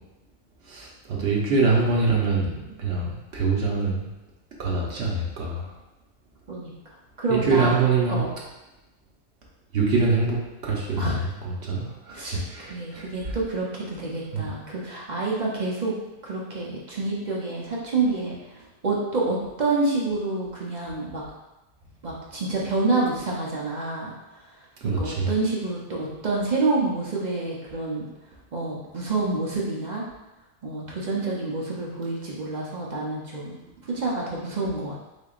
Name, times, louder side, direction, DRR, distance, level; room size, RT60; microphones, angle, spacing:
voice 1, 0.7-4.1 4.6-5.7 7.3-8.3 9.7-10.4 10.6-11.2 11.4-13.0 14.3-14.4 24.8-25.3, right 4 dB, 65° right, -3 dB, 1.1 m, -24 dB
voice 2, 7.2-7.8 8.1-8.3 11.0-11.3 12.1-15.9 16.2-21.2 22.0-24.1 25.0-28.0 28.5-30.0 30.6-33.5 33.9-35.0, right 3 dB, 45° right, -4 dB, 0.7 m, -28 dB
3.8 x 3.5 x 2.4 m, 1.0 s
omnidirectional pair, 1.2 m